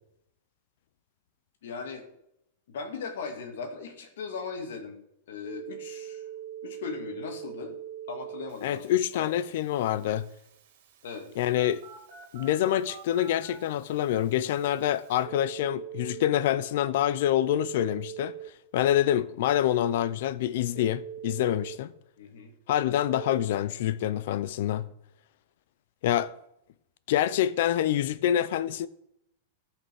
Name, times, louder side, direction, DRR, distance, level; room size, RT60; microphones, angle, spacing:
voice 1, 1.6-2.1 2.7-5.0 5.3-6.2 6.6-7.8 8.1-8.8 9.1-9.4 11.0-11.3 22.2-22.5, left 5 dB, 75° left, 2.4 m, -38 dB
Telephone, 5.4-16.2 17.5-18.5 20.7-21.8 23.0-23.4, right 10 dB, 60° right, 2.8 m, -43 dB
voice 2, 8.6-10.3 11.4-11.8 12.3-18.3 18.7-21.9 22.7-24.9 26.0-26.3 27.1-28.9, left 11 dB, 55° left, 0.6 m, -26 dB
14.5 x 5.9 x 6.1 m
supercardioid pair, 165°, 0 cm